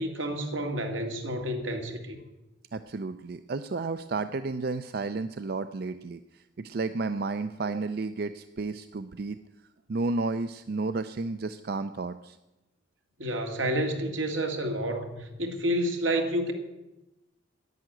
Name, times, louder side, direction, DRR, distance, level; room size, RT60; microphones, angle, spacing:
voice 1, 0.0-2.2 13.2-16.5, right 1 dB, 85° right, 4 dB, 2.2 m, -29 dB
voice 2, 2.7-9.4 9.9-12.4, right 3 dB, 55° right, 11 dB, 0.4 m, -32 dB
10.5 x 9.7 x 9.1 m, 0.98 s
head